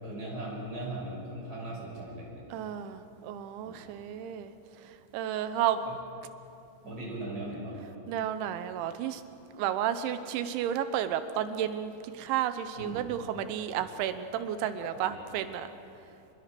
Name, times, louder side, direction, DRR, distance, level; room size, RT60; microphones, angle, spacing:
voice 1, 0.0-2.4 3.6-3.9 5.9-6.0 6.8-7.9 12.8-13.0 14.7-15.2, right 1 dB, 20° right, -4 dB, 6.6 m, -39 dB
voice 2, 2.5-4.5 5.1-5.8 6.9-7.0 8.1-9.2 9.6-15.7, right 10 dB, 85° right, 10 dB, 3.3 m, -32 dB
28.0 x 22.0 x 6.1 m, 2.7 s
omnidirectional pair, 5.2 m